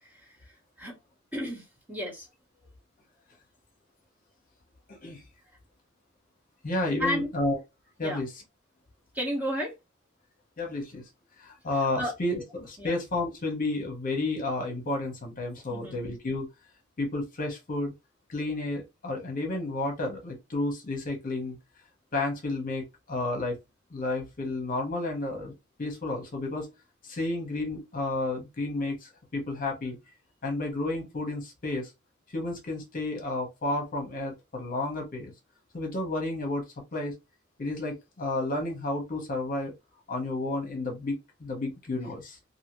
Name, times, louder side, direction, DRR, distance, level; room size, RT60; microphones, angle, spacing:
voice 1, 0.0-1.0 1.3-2.3 7.0-7.3 8.0-8.2 9.1-9.8 12.0-12.1 12.8-13.0 15.7-16.0, equal, 10° right, 1.0 m, -33 dB
voice 2, 4.9-5.2 6.6-7.6 8.0-8.3 10.6-11.0 11.4-16.5 17.0-17.9 18.3-21.6 22.1-23.6 23.9-25.5 25.8-26.7 27.0-30.0 30.4-31.9 32.3-35.3 35.7-36.6 36.9-37.1 37.6-39.7 40.1-42.4, left 2 dB, 45° left, 0.9 m, -31 dB
2.8 x 2.6 x 2.9 m
head